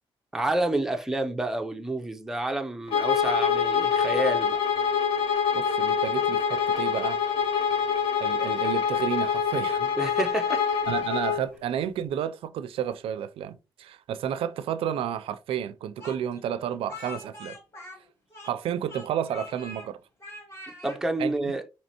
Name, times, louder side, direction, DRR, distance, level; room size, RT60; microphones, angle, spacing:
voice 1, 0.3-4.6 10.0-10.7 20.8-21.6, right 2 dB, 5° right, 0.4 m, -29 dB
Bowed string instrument, 2.9-11.4, left 7 dB, 80° left, 0.9 m, -25 dB
voice 2, 5.5-7.2 8.2-9.9 10.9-17.6 18.4-20.0 21.2-21.5, right 9 dB, 80° right, 0.4 m, -31 dB
Speech, 16.0-18.6 18.9-19.9 20.2-21.0, left 3 dB, 30° left, 1.1 m, -43 dB
4.3 x 2.9 x 2.8 m
cardioid pair, 150°, 9 cm